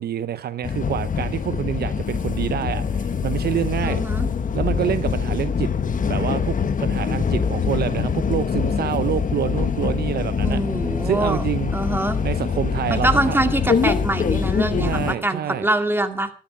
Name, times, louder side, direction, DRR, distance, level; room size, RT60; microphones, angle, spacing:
voice 1, 0.0-4.0 4.5-5.7 6.1-10.6 11.0-11.7 12.2-13.4 14.7-15.7, right 10 dB, 65° right, 0.7 m, -27 dB
sound 1, 0.6-15.1, left 6 dB, 50° left, 1.4 m, -24 dB
voice 2, 3.8-4.3 10.4-11.5 11.7-12.2 12.9-16.3, right 2 dB, 10° right, 2.2 m, -24 dB
13.0 x 11.5 x 5.1 m
cardioid pair, 65°, 17 cm